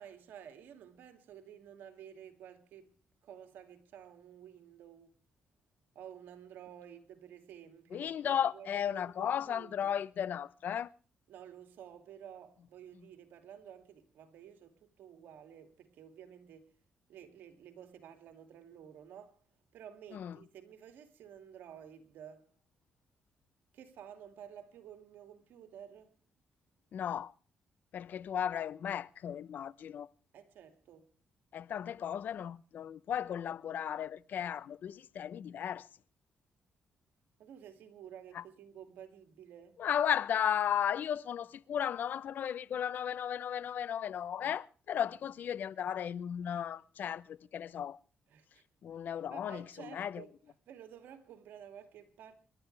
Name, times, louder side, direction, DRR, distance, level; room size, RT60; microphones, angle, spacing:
voice 1, 0.0-2.9 3.2-5.2 5.9-10.0 11.3-16.8 17.1-19.4 19.7-22.5 23.7-26.2 30.3-31.1 37.4-39.8 46.5-46.6 48.3-48.6 49.1-52.3, right 9 dB, 85° right, 2.5 m, -52 dB
voice 2, 7.9-10.9 20.1-20.3 26.9-27.3 27.9-30.1 31.5-35.9 38.3-38.4 39.8-48.0 48.8-49.6 49.9-50.2, left 9 dB, 70° left, 0.7 m, -35 dB
27.0 x 12.0 x 3.3 m
cardioid pair, 75°, 3 cm